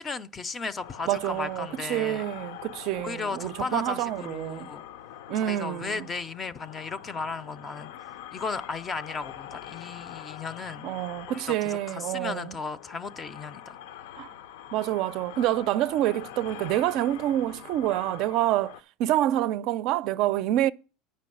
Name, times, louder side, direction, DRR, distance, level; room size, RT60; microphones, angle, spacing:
voice 1, 0.0-2.3 3.0-4.8 5.3-10.9 11.3-13.8, left 4 dB, 20° left, 0.5 m, -35 dB
sound 1, 0.8-18.8, left 10 dB, 85° left, 0.6 m, -44 dB
voice 2, 1.1-4.7 5.3-6.1 10.8-12.6 14.2-14.3 14.7-18.7 19.0-20.7, right 13 dB, 55° right, 0.4 m, -27 dB
9.9 x 5.2 x 7.7 m
cardioid pair, 150°, 0 cm